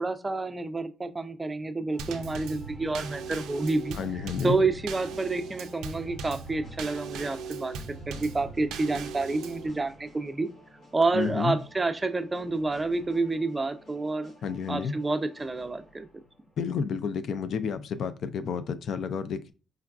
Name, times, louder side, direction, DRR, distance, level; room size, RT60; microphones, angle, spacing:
voice 1, 0.0-10.5 10.9-14.3 14.7-16.1, right 3 dB, 20° right, 0.4 m, -29 dB
sound 1, 1.9-17.1, left 1 dB, 50° left, 1.0 m, -53 dB
Drum kit / Snare drum / Bass drum, 2.0-9.7, right 5 dB, 90° right, 0.3 m, -39 dB
voice 2, 4.0-4.6 11.1-11.6 14.4-14.9 16.6-19.5, left 6 dB, 65° left, 0.3 m, -30 dB
4.6 x 2.3 x 2.2 m
cardioid pair, 90°, 0 cm